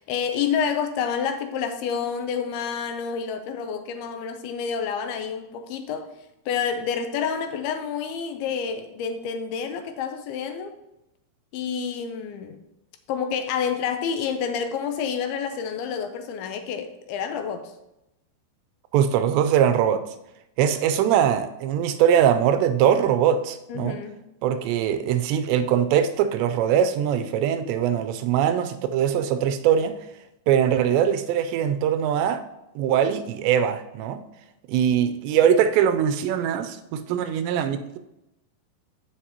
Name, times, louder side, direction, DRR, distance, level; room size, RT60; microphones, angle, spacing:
voice 1, 0.0-6.1 6.5-10.7 11.5-12.6 13.1-17.7 23.7-24.1, left 7 dB, 80° left, 7 dB, 2.4 m, -28 dB
voice 2, 18.9-20.0 20.6-24.0 24.4-30.0 30.5-32.4 32.8-34.2 34.7-38.0, right 9 dB, 90° right, 9 dB, 2.9 m, -22 dB
14.5 x 5.3 x 2.9 m, 0.88 s
omnidirectional pair, 4.9 m